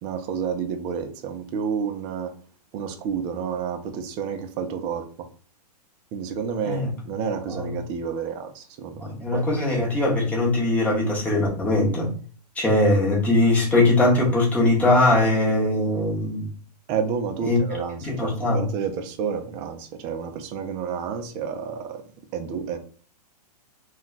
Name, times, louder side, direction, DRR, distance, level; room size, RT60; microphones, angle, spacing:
voice 1, 0.0-2.3 2.7-5.1 6.1-9.0 9.3-9.4 16.9-22.0 22.3-22.8, right 6 dB, 30° right, 0.4 m, -30 dB
voice 2, 9.0-12.1 12.6-16.5 17.4-17.6 18.0-18.6, left 2 dB, 5° left, 0.9 m, -21 dB
2.3 x 2.2 x 3.7 m
hypercardioid pair, 140°, 21 cm